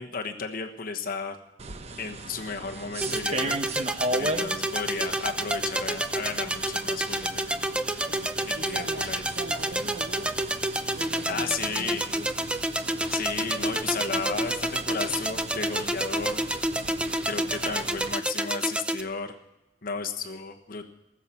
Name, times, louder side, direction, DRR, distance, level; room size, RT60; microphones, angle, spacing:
voice 1, 0.0-1.4 2.0-3.6 4.2-7.6 8.4-9.2 11.3-12.1 13.1-16.4 17.2-19.4 19.8-20.8, left 5 dB, 55° left, 5 dB, 1.2 m, -34 dB
sound 1, 1.6-18.1, right 2 dB, 40° right, 0.9 m, -37 dB
sound 2, 3.0-19.0, right 1 dB, 5° right, 0.6 m, -29 dB
voice 2, 8.0-12.5 13.4-14.1, right 2 dB, 60° right, 6 dB, 1.0 m, -43 dB
19.5 x 7.4 x 8.5 m, 0.94 s
head